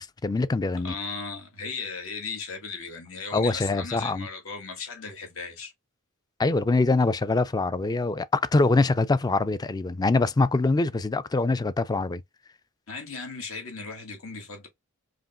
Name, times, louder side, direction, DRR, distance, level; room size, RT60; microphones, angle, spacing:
voice 1, 0.0-0.9 3.3-4.3 6.4-12.2, left 3 dB, 20° left, 0.3 m, -24 dB
voice 2, 0.8-5.7 12.9-14.7, left 4 dB, 70° left, 1.6 m, -36 dB
5.0 x 2.9 x 2.4 m
head